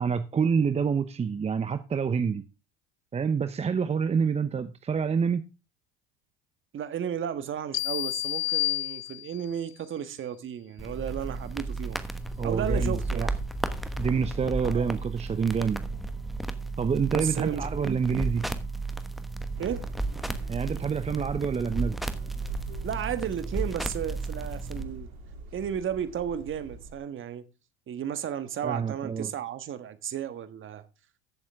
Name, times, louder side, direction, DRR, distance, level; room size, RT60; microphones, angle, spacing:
voice 1, 0.0-2.4 3.1-5.5 12.4-13.3 14.0-15.8 16.8-18.5 20.5-22.0 28.6-29.3, right 6 dB, 20° right, 0.7 m, -27 dB
voice 2, 6.7-12.0 12.4-13.3 14.7-14.9 17.1-18.2 19.6-19.8 22.8-25.1 25.5-27.5 27.9-30.9, right 9 dB, 40° right, 1.4 m, -33 dB
sound 1, 7.7-9.6, left 18 dB, 70° left, 0.6 m, -30 dB
sound 2, 10.8-24.8, right 2 dB, ahead, 1.2 m, -33 dB
sound 3, 19.5-27.0, right 2 dB, 70° right, 2.9 m, -43 dB
14.5 x 7.2 x 3.5 m
hypercardioid pair, 80°, 31 cm